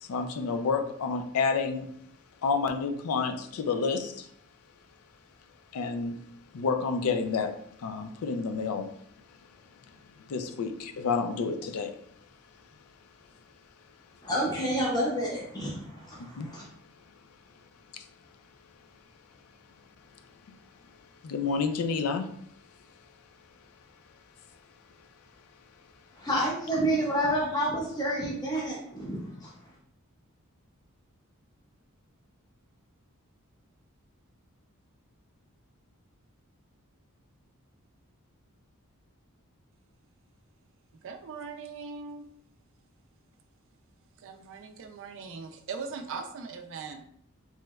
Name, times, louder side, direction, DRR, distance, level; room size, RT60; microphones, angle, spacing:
voice 1, 0.1-1.9 2.4-4.3 5.7-6.2 6.5-8.9 10.3-11.9 16.4-16.5 17.9-18.1 21.2-22.3, left 5 dB, 75° left, 0.4 m, -29 dB
voice 2, 14.2-16.6 26.2-29.5, equal, 20° left, 0.6 m, -29 dB
voice 3, 41.0-42.3 44.2-47.0, right 5 dB, 60° right, 0.4 m, -40 dB
3.2 x 3.0 x 2.3 m
head